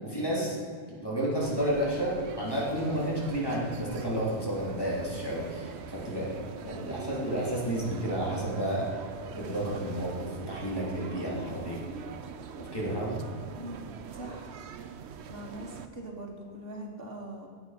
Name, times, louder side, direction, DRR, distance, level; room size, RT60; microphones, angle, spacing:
voice 1, 0.0-0.6 1.0-8.9 9.3-11.8 12.6-13.2, right 1 dB, 20° left, -5 dB, 3.4 m, -31 dB
sound 1, 1.4-15.9, right 7 dB, 75° right, 1.0 m, -43 dB
voice 2, 13.6-14.5 15.3-17.5, right 1 dB, 60° right, 0 dB, 2.0 m, -42 dB
16.0 x 8.9 x 6.0 m, 2.1 s
omnidirectional pair, 1.1 m